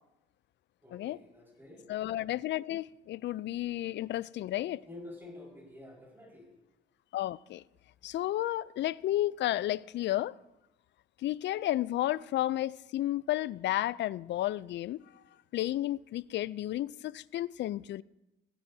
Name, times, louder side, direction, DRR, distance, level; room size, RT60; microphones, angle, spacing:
voice 1, 0.8-1.8 4.8-6.5, left 2 dB, 10° right, 4.8 m, -49 dB
voice 2, 1.9-4.8 7.1-7.6 8.0-10.4 11.2-15.0 15.5-18.0, left 14 dB, 65° left, 0.4 m, -32 dB
17.0 x 16.0 x 2.7 m
cardioid pair, 90°, 20 cm